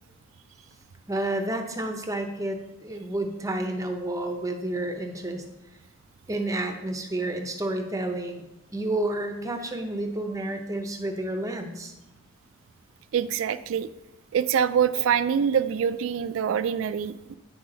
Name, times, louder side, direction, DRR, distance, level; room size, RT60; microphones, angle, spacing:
voice 1, 1.1-5.4 6.3-8.4 8.7-11.9, right 1 dB, 15° right, 5 dB, 0.7 m, -30 dB
voice 2, 13.1-13.9 14.3-17.4, right 8 dB, 70° right, 13 dB, 0.3 m, -25 dB
9.6 x 5.7 x 3.8 m, 0.94 s
head